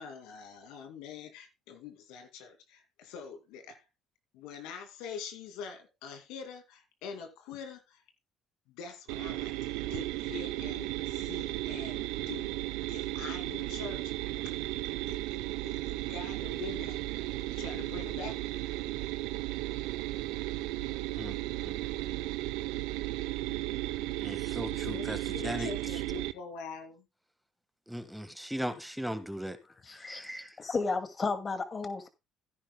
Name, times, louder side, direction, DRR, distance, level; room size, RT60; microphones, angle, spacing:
voice 1, 0.0-3.8 4.3-8.0 8.7-12.5 12.9-14.1 14.4-14.7 15.0-15.2 15.6-17.0 17.5-18.6 24.8-27.1, left 6 dB, 85° left, 2.4 m, -44 dB
sound 1, 9.1-26.3, right 17 dB, 85° right, 0.7 m, -35 dB
voice 2, 21.6-22.1 24.2-25.2 25.4-25.7 27.9-29.6 29.9-30.5, equal, ahead, 1.6 m, -38 dB
voice 3, 29.8-30.3 30.6-32.1, left 4 dB, 35° left, 2.3 m, -33 dB
16.0 x 10.0 x 2.3 m
supercardioid pair, 80°, 0 cm